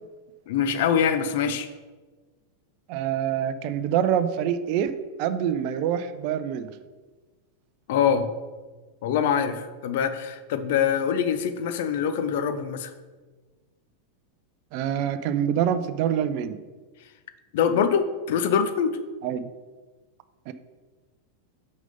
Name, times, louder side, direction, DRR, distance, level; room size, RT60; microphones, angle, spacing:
voice 1, 0.5-1.7 7.9-8.3 9.0-12.9 17.5-19.0, left 7 dB, 50° left, 10 dB, 0.6 m, -24 dB
voice 2, 2.9-4.9 5.2-6.7 14.7-16.6 19.2-19.5 20.5-20.6, right 9 dB, 45° right, 12 dB, 0.5 m, -25 dB
6.1 x 5.2 x 5.3 m, 1.3 s
figure-of-eight pair, 90°, 0 cm